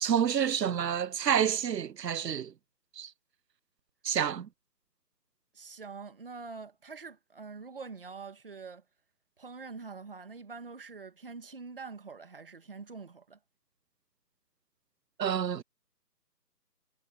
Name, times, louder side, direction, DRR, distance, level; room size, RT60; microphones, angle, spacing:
voice 1, 0.0-2.5 3.0-3.1 4.0-4.5 15.2-15.6, right 8 dB, 85° right, 0.7 m, -28 dB
voice 2, 5.5-8.8 9.4-13.4, right 4 dB, 35° right, 1.9 m, -45 dB
figure-of-eight pair, 175°, 49 cm